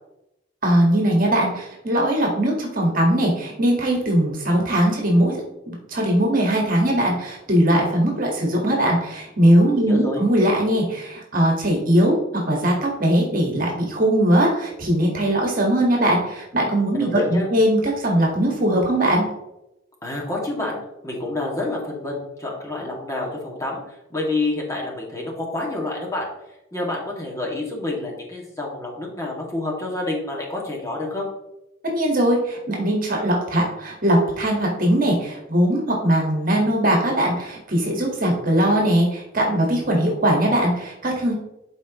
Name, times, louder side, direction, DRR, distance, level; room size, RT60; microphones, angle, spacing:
voice 1, 0.6-5.4 5.7-12.1 12.5-19.2 31.9-41.3, right 1 dB, 50° right, -1 dB, 1.7 m, -20 dB
voice 2, 9.8-10.2 16.9-17.5 20.0-26.3 26.7-31.3, left 2 dB, 15° left, -3 dB, 2.1 m, -28 dB
12.0 x 4.6 x 3.0 m, 0.89 s
head